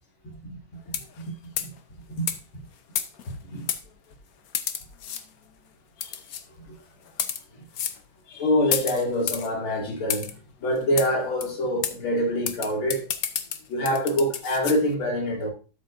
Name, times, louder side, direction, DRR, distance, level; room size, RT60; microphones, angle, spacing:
voice 1, 0.2-0.6 1.6-1.7 2.2-2.3 3.3-3.7 6.0-6.2 6.7-6.8 8.3-10.3 10.6-13.1 13.7-15.5, equal, 75° left, 3.2 m, -25 dB
sound 1, 0.9-1.2 1.6-1.8 2.3-2.4 3.0-3.3 3.7-3.8 4.5-5.2 6.0-6.4 7.1-7.4 7.7-8.0 8.7-9.5 10.1-10.3 11.0-11.1 11.4-11.5 11.8-12.0 12.5-14.8, left 9 dB, 60° left, 1.1 m, -30 dB
12.5 x 7.6 x 2.6 m
omnidirectional pair, 2.3 m